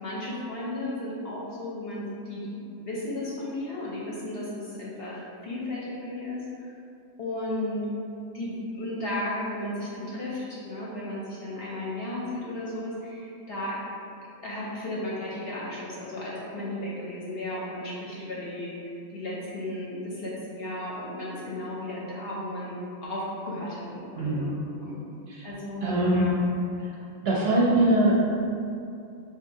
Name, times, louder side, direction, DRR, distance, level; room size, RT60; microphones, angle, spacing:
voice 1, 0.0-2.5 2.7-6.7 7.2-7.9 8.3-13.8 14.4-25.0 25.4-26.3, left 1 dB, 60° left, -6 dB, 0.7 m, -34 dB
voice 2, 24.2-24.5 25.3-25.4 25.8-26.4 26.8-26.9 27.2-28.5, right 1 dB, 60° right, -5 dB, 0.7 m, -23 dB
4.2 x 2.4 x 2.6 m, 2.5 s
omnidirectional pair, 1.3 m